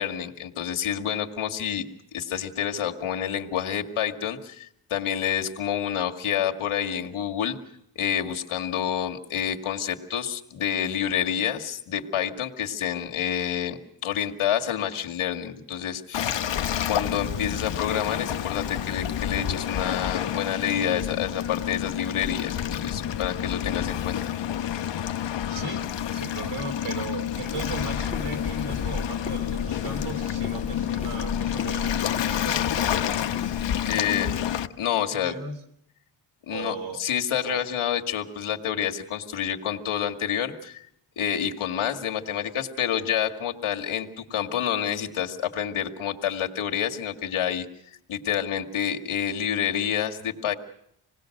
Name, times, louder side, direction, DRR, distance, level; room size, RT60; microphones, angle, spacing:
voice 1, 0.0-1.9 2.1-7.6 8.0-16.4 16.9-24.3 33.8-34.3 34.8-35.3 36.5-40.8 41.2-47.7 48.1-50.5, left 9 dB, 80° left, 2 dB, 2.1 m, -28 dB
Waves surf, 16.1-34.7, left 10 dB, 60° left, 1.0 m, -29 dB
voice 2, 25.5-25.8 26.1-32.6 35.1-35.6 36.5-37.0 37.4-37.6, right 3 dB, 85° right, 8 dB, 3.6 m, -36 dB
Walk footsteps, 27.3-33.7, left 3 dB, 15° left, 2.6 m, -37 dB
27.0 x 19.5 x 6.5 m, 0.74 s
wide cardioid pair, 120°, 49 cm